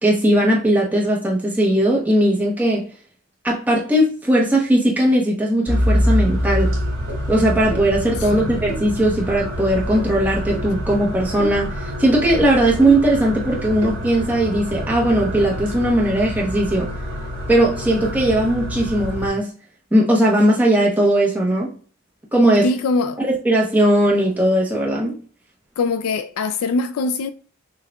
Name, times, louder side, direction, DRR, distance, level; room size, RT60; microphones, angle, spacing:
voice 1, 0.0-2.9 3.4-6.8 7.3-16.9 17.5-19.5 19.9-21.8 22.3-22.7 23.2-25.2, right 1 dB, 10° right, 0.9 m, -18 dB
sound 1, 5.7-19.3, equal, 65° right, 1.8 m, -26 dB
voice 2, 8.2-8.6 22.6-23.2 25.8-27.3, left 3 dB, 85° left, 0.3 m, -23 dB
6.1 x 2.4 x 2.3 m
head